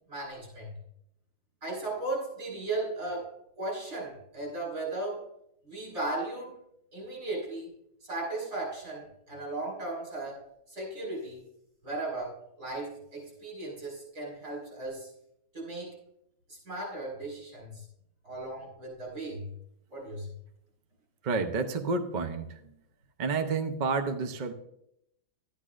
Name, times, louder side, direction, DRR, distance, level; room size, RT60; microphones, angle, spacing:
voice 1, 0.1-0.8 1.6-5.3 5.6-6.6 6.9-7.7 8.0-11.4 11.8-15.1 15.5-16.0 16.5-17.9 18.2-19.5 19.9-20.3, right 2 dB, 80° right, -2 dB, 5.3 m, -36 dB
voice 2, 21.2-22.7 23.2-24.5, right 4 dB, 45° right, 7 dB, 0.6 m, -30 dB
12.0 x 10.5 x 2.5 m, 0.76 s
omnidirectional pair, 1.6 m